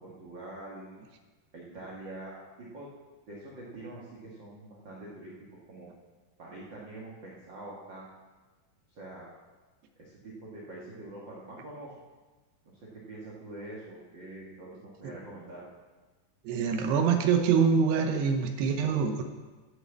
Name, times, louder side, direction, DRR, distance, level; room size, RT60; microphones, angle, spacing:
voice 1, 0.0-1.0 1.5-2.9 3.3-5.3 5.7-5.9 6.4-8.1 8.9-9.3 10.0-11.9 12.6-15.6, right 2 dB, 50° right, -6 dB, 1.4 m, -45 dB
voice 2, 16.5-19.2, right 6 dB, 75° right, 6 dB, 2.7 m, -25 dB
14.0 x 6.3 x 7.3 m, 1.3 s
omnidirectional pair, 5.2 m